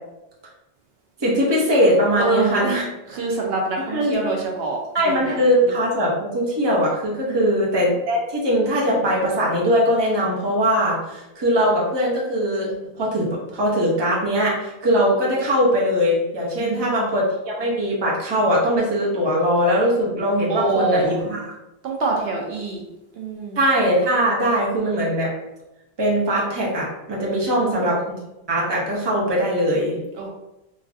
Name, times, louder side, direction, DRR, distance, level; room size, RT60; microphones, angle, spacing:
voice 1, 1.2-2.9 3.9-4.2 4.9-21.4 23.6-25.3 26.0-28.0 28.5-30.0, equal, 30° right, -4 dB, 0.6 m, -21 dB
voice 2, 2.2-2.8 3.1-5.4 7.2-7.6 16.6-17.1 20.5-21.2 21.8-22.8 23.1-23.6 27.2-27.3 27.6-27.8 30.2-30.3, right 3 dB, 70° right, -1 dB, 0.8 m, -25 dB
3.1 x 2.5 x 2.4 m, 0.94 s
omnidirectional pair, 1.1 m